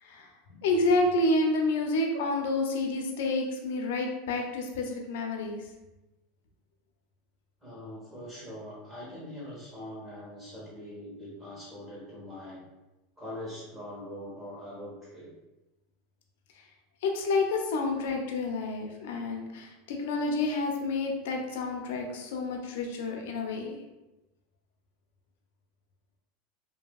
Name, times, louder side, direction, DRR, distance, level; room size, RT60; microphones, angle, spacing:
voice 1, 0.0-5.7 16.5-16.6 17.0-23.8, left 2 dB, 80° left, 2 dB, 0.5 m, -29 dB
voice 2, 7.6-12.6 13.2-15.3, left 1 dB, 15° right, -8 dB, 1.2 m, -42 dB
2.7 x 2.6 x 2.3 m, 1.0 s
supercardioid pair, 145°, 0 cm